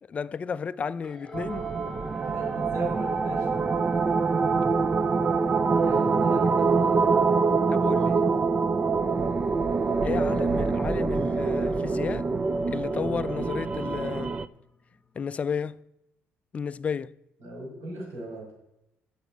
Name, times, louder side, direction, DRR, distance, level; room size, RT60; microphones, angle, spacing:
voice 1, 0.1-1.7 7.7-8.2 10.0-12.3 12.7-14.3 15.2-15.8 16.5-17.1, left 6 dB, 30° left, 0.4 m, -32 dB
sound 1, 1.0-15.8, left 2 dB, 10° left, 1.4 m, -49 dB
sound 2, 1.3-14.4, right 4 dB, 25° right, 0.5 m, -25 dB
voice 2, 2.2-3.5 5.8-7.2 10.6-10.9 17.4-18.5, right 1 dB, 75° right, 5.4 m, -37 dB
8.9 x 7.2 x 8.5 m
cardioid pair, 130°, 4 cm